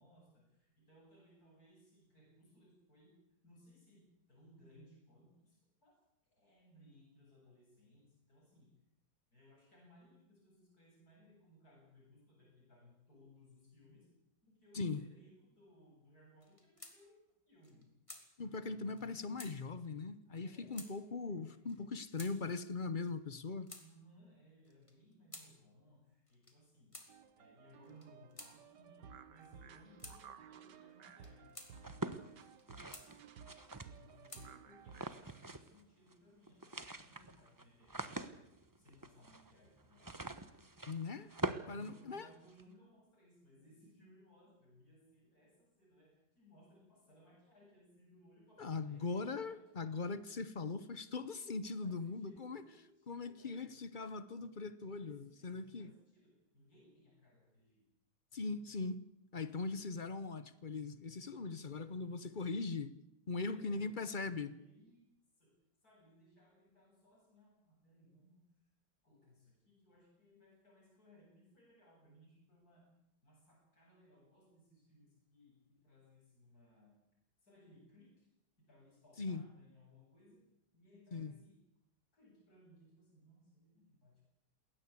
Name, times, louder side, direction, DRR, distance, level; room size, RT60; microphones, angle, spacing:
voice 1, 0.0-3.2 3.4-6.0 6.3-8.7 9.3-14.1 14.4-17.1 17.5-17.9 20.4-21.9 23.8-27.0 27.4-31.6 31.9-32.5 34.0-38.5 38.8-40.2 41.5-49.9 51.6-53.8 55.0-57.8 63.4-65.5 65.8-68.4 69.0-72.9 73.2-77.0 77.4-78.3 78.6-80.4 80.7-81.6 82.1-84.2, equal, 55° left, 8.5 m, -64 dB
sound 1, 16.4-17.0 17.3-17.4 17.6-18.3 19.0-19.1 19.4-19.5 20.4-20.5 20.7-20.9 21.7-21.8 22.2-22.3 23.1-23.9 24.6-25.5 26.3-26.6 26.9-27.1 27.8-28.5 29.4-29.5 30.0-30.2 31.0-31.7 32.4-33.1 33.8-34.5 35.3-35.8, left 1 dB, 15° left, 3.1 m, -53 dB
voice 2, 18.4-23.7 40.9-41.3 41.7-42.3 48.6-52.6 53.1-55.9 58.3-59.1 59.3-62.9 63.3-64.5 79.2-79.4 81.1-81.3, left 4 dB, 40° left, 0.8 m, -40 dB
sound 2, 27.1-35.1, right 7 dB, 75° right, 1.8 m, -56 dB
sound 3, 31.8-34.3 34.9-35.8 36.1-36.2 36.5-42.6, right 2 dB, 15° right, 0.9 m, -44 dB
20.5 x 19.0 x 8.4 m
omnidirectional pair, 1.9 m